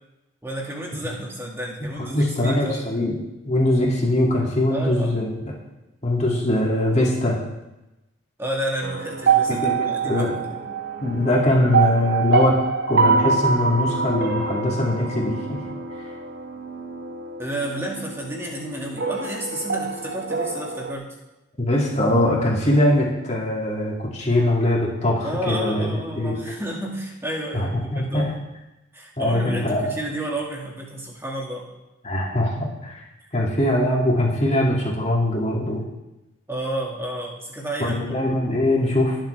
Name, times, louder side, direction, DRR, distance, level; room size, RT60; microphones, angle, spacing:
voice 1, 0.4-3.1 4.7-5.2 8.4-10.7 17.4-21.1 25.2-28.3 28.9-31.7 36.5-38.2, right 1 dB, 15° right, -2 dB, 2.1 m, -31 dB
voice 2, 2.1-3.1 3.4-5.4 6.0-7.4 9.5-10.3 11.0-12.5 12.9-15.6 21.6-26.3 27.5-28.2 29.2-29.9 32.0-32.5 32.8-33.0 33.3-35.8 37.8-39.2, left 1 dB, 35° left, -3 dB, 2.5 m, -22 dB
sound 1, 8.8-20.9, right 5 dB, 50° right, 0.8 m, -25 dB
20.0 x 7.5 x 3.5 m, 0.98 s
head